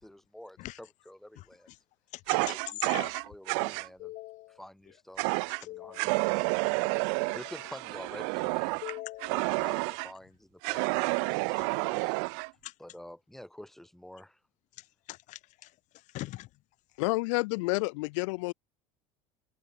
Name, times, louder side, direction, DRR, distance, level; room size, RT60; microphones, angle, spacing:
voice 1, 0.0-1.7 2.3-4.1 4.5-8.9 9.3-12.5 12.8-14.4, left 1 dB, ahead, 2.4 m, -49 dB
Fire, 2.3-3.9 5.2-5.6 6.0-10.1 10.6-12.5, right 37 dB, 75° right, 0.4 m, -30 dB
voice 2, 4.0-4.5 5.7-6.0 7.3-7.4 8.8-9.3 15.1-15.4 16.1-16.5, left 18 dB, 50° left, 1.5 m, -40 dB
voice 3, 17.0-18.5, left 27 dB, 85° left, 0.5 m, -29 dB
cardioid pair, 145°, 16 cm